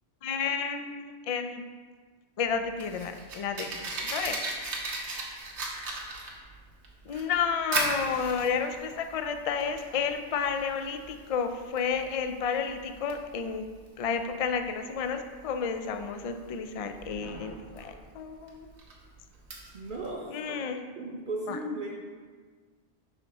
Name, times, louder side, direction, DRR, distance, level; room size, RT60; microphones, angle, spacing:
voice 1, 0.2-1.6 2.4-4.4 5.8-6.0 7.1-13.7 14.0-18.7 20.3-20.8 21.5-21.6, left 6 dB, 60° left, 7 dB, 0.3 m, -31 dB
Fire, 2.4-20.1, right 2 dB, 75° right, 1.3 m, -38 dB
voice 2, 19.7-20.6 21.0-22.0, right 1 dB, 50° right, -1 dB, 0.8 m, -36 dB
5.8 x 5.7 x 4.1 m, 1.5 s
omnidirectional pair, 1.2 m